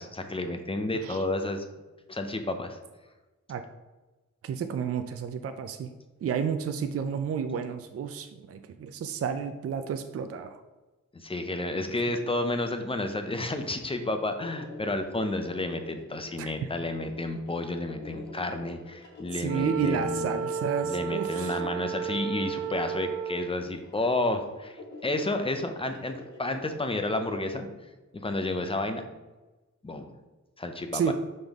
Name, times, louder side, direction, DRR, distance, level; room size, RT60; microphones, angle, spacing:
voice 1, 0.0-1.6 2.1-2.8 11.1-20.3 20.8-27.7 28.1-29.0 29.8-30.1 30.6-31.1, left 2 dB, 20° left, 7 dB, 0.5 m, -31 dB
voice 2, 4.4-5.9 6.2-10.6 16.4-16.7 19.3-21.6 30.9-31.1, right 7 dB, 50° right, 8 dB, 0.4 m, -31 dB
sound 1, 13.9-27.6, left 2 dB, 70° left, 1.6 m, -47 dB
Wind instrument woodwind instrument, 19.4-23.6, right 6 dB, 90° right, 0.7 m, -33 dB
5.7 x 5.3 x 3.5 m, 1.2 s
wide cardioid pair, 160°, 31 cm